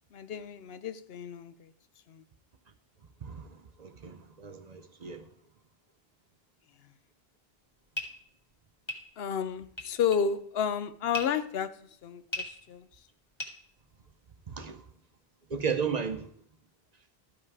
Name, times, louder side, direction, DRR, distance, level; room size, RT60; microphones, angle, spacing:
voice 1, 0.1-1.7 2.1-2.2 9.2-11.7 12.0-12.9, left 7 dB, 75° left, 0.8 m, -31 dB
voice 2, 3.2-5.2 14.5-14.8 15.5-16.3, right 6 dB, 45° right, 0.7 m, -34 dB
sound 1, 7.6-14.3, equal, 25° left, 1.5 m, -41 dB
12.5 x 5.6 x 4.7 m
omnidirectional pair, 1.0 m